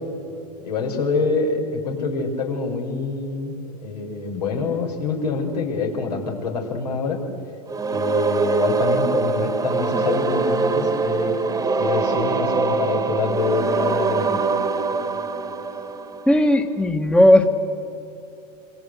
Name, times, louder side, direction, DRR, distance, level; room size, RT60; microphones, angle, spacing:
voice 1, 0.6-3.5 3.8-7.2 7.9-11.4 11.8-14.4, left 4 dB, 75° left, 2 dB, 5.7 m, -26 dB
sound 1, 7.7-16.6, right 4 dB, 15° right, 1.8 m, -23 dB
voice 2, 16.3-17.5, left 1 dB, 5° left, 7 dB, 1.6 m, -15 dB
26.5 x 26.5 x 8.1 m, 2.9 s
hypercardioid pair, 95°, 21 cm